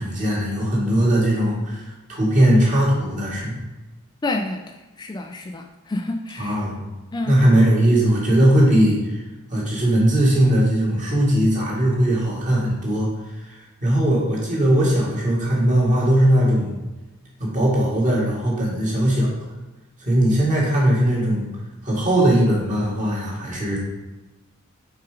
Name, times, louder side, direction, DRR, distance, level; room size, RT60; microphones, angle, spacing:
voice 1, 0.0-3.6 6.4-6.9 7.2-9.2 9.5-13.1 13.4-16.8 17.4-19.3 20.0-21.6 21.8-23.8, right 1 dB, 35° right, -5 dB, 2.3 m, -19 dB
voice 2, 4.2-6.6 7.1-7.4, left 2 dB, 20° left, 5 dB, 0.3 m, -29 dB
5.8 x 4.9 x 4.9 m, 1.1 s
head